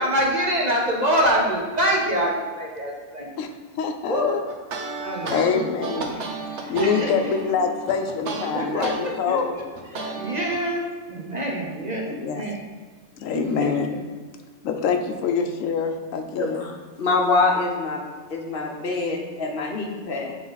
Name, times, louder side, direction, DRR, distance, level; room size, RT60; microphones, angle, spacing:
voice 1, 0.0-3.3 4.1-4.3 5.0-5.4 5.8-7.3 8.5-9.6 9.9-12.5 13.3-14.0, right 1 dB, 40° right, -2 dB, 0.9 m, -26 dB
voice 2, 3.8-4.4 5.3-6.2 6.7-9.6 9.9-10.2 12.1-12.4 13.2-13.9 14.6-16.6, left 6 dB, 85° left, 5 dB, 1.0 m, -25 dB
sound 1, 4.5-9.0 9.4-10.6, right 4 dB, 65° right, 1.1 m, -33 dB
voice 3, 16.4-18.0 18.3-20.3, left 3 dB, 50° left, 1 dB, 0.9 m, -25 dB
7.3 x 3.8 x 4.0 m, 1.5 s
omnidirectional pair, 1.3 m